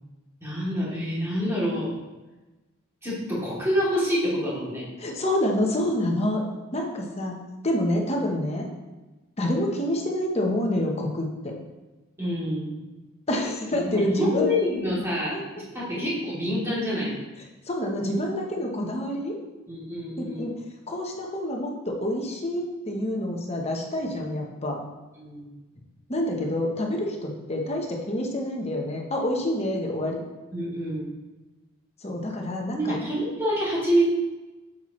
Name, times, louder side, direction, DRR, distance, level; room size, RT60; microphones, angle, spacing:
voice 1, 0.4-1.9 3.0-4.8 12.2-12.7 13.7-17.1 19.7-20.5 25.2-25.5 30.5-31.1 32.7-34.1, equal, 10° right, -9 dB, 2.9 m, -27 dB
voice 2, 5.0-6.4 6.7-7.4 7.6-8.7 9.4-11.5 13.3-14.5 15.3-15.4 17.7-19.4 20.2-20.6 20.9-24.8 26.1-30.2 32.0-33.0, left 1 dB, 30° left, 0 dB, 1.1 m, -27 dB
8.1 x 7.6 x 3.2 m, 1.1 s
head